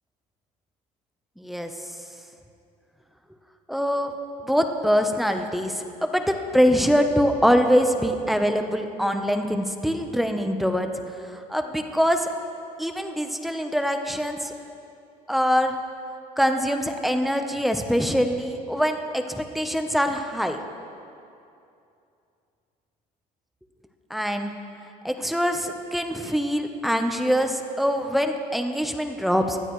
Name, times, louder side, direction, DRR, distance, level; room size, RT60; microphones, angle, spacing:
voice 1, 1.4-1.7 3.7-4.1 4.4-10.9 11.3-12.3 12.8-14.5 15.3-15.7 16.4-20.6 24.1-24.5 25.0-29.6, equal, ahead, 5 dB, 0.8 m, -24 dB
19.5 x 12.5 x 3.2 m, 2.6 s
cardioid pair, 120°, 16 cm